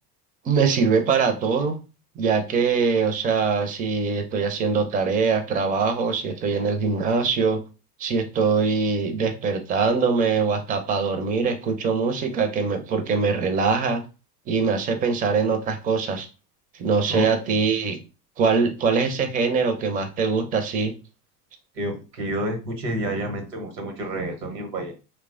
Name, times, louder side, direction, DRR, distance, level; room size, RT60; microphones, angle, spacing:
voice 1, 0.4-1.8 2.2-7.6 8.0-14.0 14.5-16.3 16.8-18.0 18.4-20.9, right 5 dB, 20° right, 6 dB, 0.4 m, -23 dB
voice 2, 21.7-24.9, right 1 dB, 80° right, 5 dB, 1.0 m, -29 dB
3.0 x 2.2 x 2.4 m, 0.31 s
hypercardioid pair, 80°, 49 cm